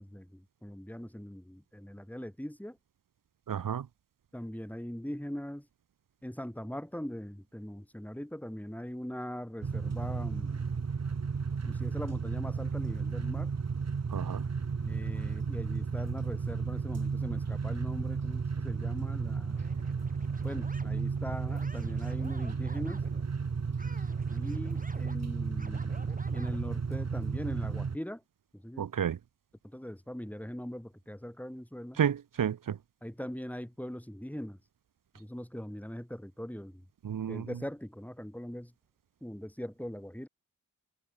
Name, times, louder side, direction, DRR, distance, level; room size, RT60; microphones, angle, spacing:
voice 1, 0.0-2.8 4.3-5.7 6.2-10.6 11.6-13.5 14.8-19.7 20.4-23.0 24.3-28.2 28.5-28.9 29.6-32.0 33.0-34.6 35.1-36.9 37.3-38.7 39.2-40.3, equal, 5° left, 5.2 m, -41 dB
voice 2, 3.5-3.8 14.1-14.4 28.8-29.2 32.0-32.8 37.0-37.4, right 8 dB, 75° right, 0.7 m, -31 dB
sound 1, 9.6-28.0, right 5 dB, 50° right, 1.1 m, -33 dB
sound 2, 19.5-23.3 23.8-26.6, right 1 dB, 25° right, 6.9 m, -52 dB
wide cardioid pair, 55°, 33 cm